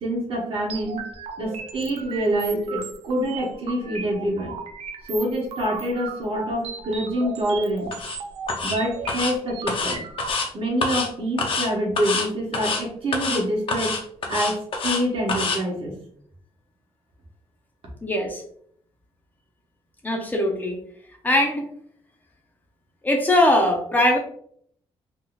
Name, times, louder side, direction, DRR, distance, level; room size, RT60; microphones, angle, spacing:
voice 1, 0.0-1.1 1.4-4.5 5.1-7.9 8.6-10.0 10.5-14.0 14.3-16.0, right 1 dB, 60° right, -1 dB, 1.1 m, -26 dB
sound 1, 0.7-10.3, right 5 dB, 75° right, 0.4 m, -36 dB
sound 2, 7.9-8.2 8.5-8.8 9.1-9.3 9.7-10.5 10.8-11.1 11.4-11.7 12.0-12.3 12.5-12.8 13.1-13.4 13.7-15.0 15.3-15.6, left 4 dB, 55° left, 0.6 m, -26 dB
voice 2, 18.0-18.4 20.0-20.8 21.2-21.7 23.0-24.2, left 1 dB, 15° left, 1 dB, 0.5 m, -20 dB
3.7 x 2.7 x 2.3 m, 0.64 s
cardioid pair, 140°, 11 cm